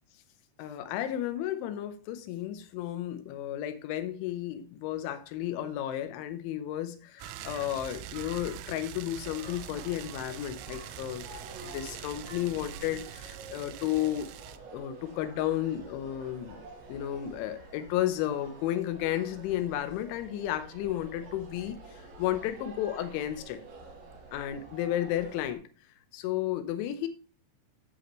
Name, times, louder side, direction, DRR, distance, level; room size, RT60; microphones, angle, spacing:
voice 1, 0.6-11.3 11.6-14.3 14.7-16.6 16.9-21.8 22.2-23.6 24.3-25.7 26.1-27.1, left 12 dB, 80° left, 10 dB, 3.0 m, -33 dB
sound 1, 7.2-14.6, right 12 dB, 85° right, 3.1 m, -44 dB
sound 2, 9.2-25.6, right 2 dB, 65° right, 4.9 m, -49 dB
14.0 x 5.5 x 3.1 m, 0.36 s
omnidirectional pair, 5.8 m